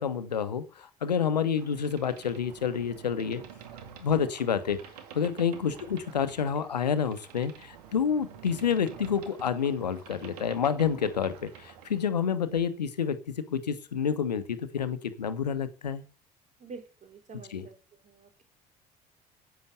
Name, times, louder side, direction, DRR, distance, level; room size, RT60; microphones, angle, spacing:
voice 1, 0.0-3.4 4.0-4.8 5.1-16.0 17.5-17.7, left 7 dB, 80° left, 13 dB, 1.2 m, -29 dB
Boat Water vehicle, 1.5-12.1, right 8 dB, 70° right, 2.2 m, -49 dB
voice 2, 16.6-17.7 18.0-18.4, right 4 dB, 35° right, 5 dB, 4.4 m, -47 dB
11.0 x 9.1 x 8.1 m, 0.38 s
figure-of-eight pair, 55°, 21 cm